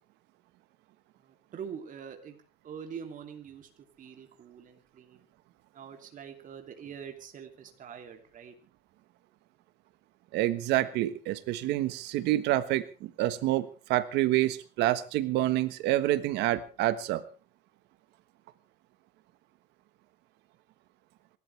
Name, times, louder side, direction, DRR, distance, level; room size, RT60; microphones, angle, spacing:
voice 1, 1.2-2.4 2.6-3.7 4.0-5.2 5.7-8.5, right 7 dB, 50° right, 4 dB, 2.9 m, -44 dB
voice 2, 10.3-17.2, right 15 dB, 90° right, 13 dB, 1.4 m, -27 dB
27.5 x 13.0 x 3.4 m, 0.36 s
cardioid pair, 110°, 17 cm